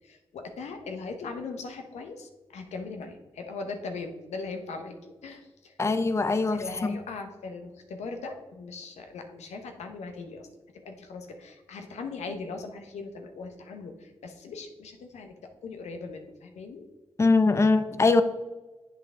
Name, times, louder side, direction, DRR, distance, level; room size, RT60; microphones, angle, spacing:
voice 1, 0.0-5.7 6.5-10.5 10.8-16.8, left 4 dB, 80° left, 5 dB, 0.9 m, -39 dB
voice 2, 5.8-7.0 17.2-18.2, left 3 dB, 25° left, 10 dB, 0.5 m, -22 dB
7.9 x 5.6 x 3.7 m, 1.2 s
supercardioid pair, 55°, 11 cm